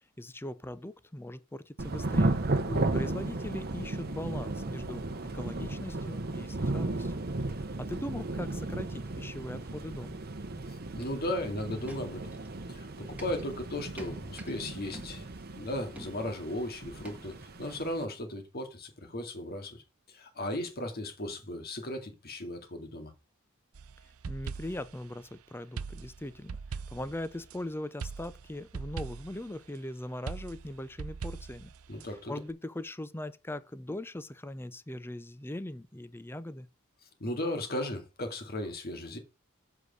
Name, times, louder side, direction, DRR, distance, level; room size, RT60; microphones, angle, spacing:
voice 1, 0.2-2.4 2.9-7.2 7.6-10.2 24.3-31.7 32.3-36.7, left 1 dB, 10° left, 0.5 m, -40 dB
Thunder / Rain, 1.8-18.0, right 2 dB, 45° right, 0.9 m, -35 dB
voice 2, 10.9-12.3 12.7-15.3 15.5-19.8 20.1-23.1 31.9-32.4 37.2-39.2, left 1 dB, 45° left, 2.2 m, -36 dB
sound 1, 11.9-12.6 13.0-14.6 14.9-15.6 16.0-16.5 17.1-17.4, right 1 dB, 5° right, 2.0 m, -49 dB
sound 2, 23.7-25.0 25.8-27.6 28.0-29.5 30.3-32.1, right 5 dB, 80° right, 0.5 m, -41 dB
7.6 x 4.9 x 6.4 m
head